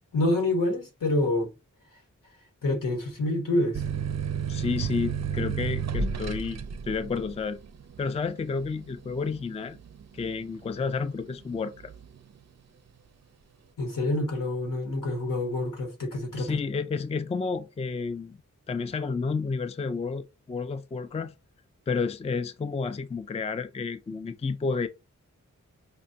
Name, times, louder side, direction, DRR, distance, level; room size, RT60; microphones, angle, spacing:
voice 1, 0.1-1.5 2.6-3.8 13.8-16.6, left 1 dB, 80° left, 1.3 m, -27 dB
sound 1, 3.7-11.0 11.5-12.2, right 6 dB, 55° right, 0.4 m, -32 dB
voice 2, 4.5-7.6 8.0-9.8 10.1-11.9 16.4-18.4 18.7-21.3 21.9-24.9, left 4 dB, 20° left, 0.3 m, -31 dB
5.1 x 2.2 x 2.7 m
wide cardioid pair, 55°, 32 cm